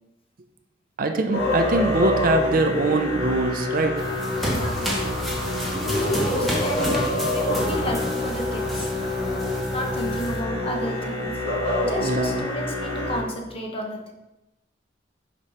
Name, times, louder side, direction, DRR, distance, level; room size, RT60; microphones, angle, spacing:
voice 1, 1.0-4.0 12.0-12.4, right 2 dB, 50° right, 5 dB, 0.6 m, -23 dB
Musical instrument, 1.3-13.2, left 1 dB, 70° left, 2.4 m, -26 dB
sound 1, 4.0-10.4, equal, ahead, 1.1 m, -31 dB
voice 2, 4.4-4.9 6.0-8.9 9.7-11.4 11.8-14.1, equal, 30° left, 1 dB, 0.9 m, -32 dB
5.1 x 5.1 x 4.2 m, 0.96 s
head